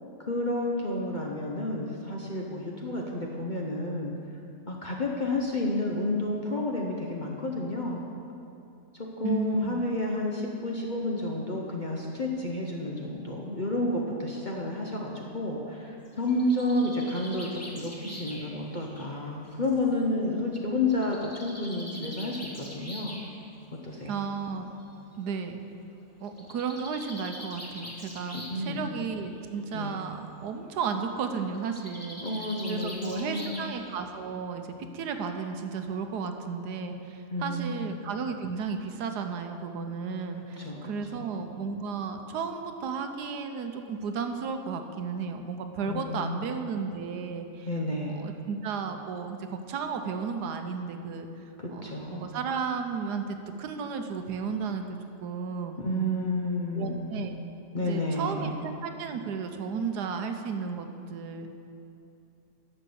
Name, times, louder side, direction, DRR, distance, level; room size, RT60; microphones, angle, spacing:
voice 1, 0.2-4.1 4.7-8.0 9.2-22.4 22.7-23.2 23.8-24.2 28.3-28.9 29.7-30.0 32.2-33.6 37.3-37.9 40.6-40.9 41.2-41.3 45.9-46.4 47.7-48.1 51.6-52.3 55.8-57.2 57.7-58.6, left 1 dB, 35° left, -2 dB, 0.8 m, -30 dB
voice 2, 9.2-9.9 24.1-24.7 25.1-25.6 26.2-32.2 32.7-47.7 48.1-51.3 51.7-56.3 56.7-57.4 57.8-61.5, right 5 dB, 75° right, 6 dB, 1.3 m, -34 dB
Bird, 16.0-19.8 20.9-23.3 24.3-24.4 24.8-24.9 25.1-25.2 26.3-28.7 29.0-29.4 31.5-34.0, left 1 dB, 10° left, 1.2 m, -43 dB
11.0 x 6.7 x 6.9 m, 2.7 s
omnidirectional pair, 1.8 m